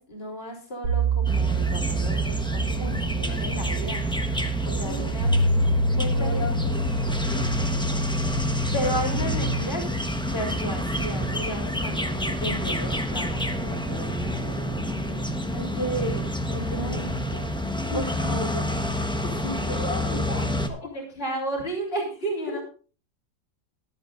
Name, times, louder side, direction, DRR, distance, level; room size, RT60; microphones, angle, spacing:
voice 1, 0.0-4.3 4.7-5.3 6.0-6.6 8.7-9.8 10.3-15.2 15.5-17.4 17.9-18.8 19.4-20.2 20.8-22.6, right 1 dB, 30° left, 0 dB, 3.7 m, -33 dB
sound 1, 0.8-9.6, right 2 dB, 80° right, 2.9 m, -27 dB
sound 2, 1.2-20.7, left 1 dB, 5° left, 0.6 m, -28 dB
sound 3, 2.8-14.2, right 1 dB, 45° right, 2.1 m, -45 dB
voice 2, 4.7-5.2 6.0-8.1 17.9-18.0 18.5-18.7 19.8-21.0 22.5-22.6, left 1 dB, 70° left, -1 dB, 4.2 m, -37 dB
23.5 x 8.3 x 2.5 m, 0.38 s
omnidirectional pair, 2.1 m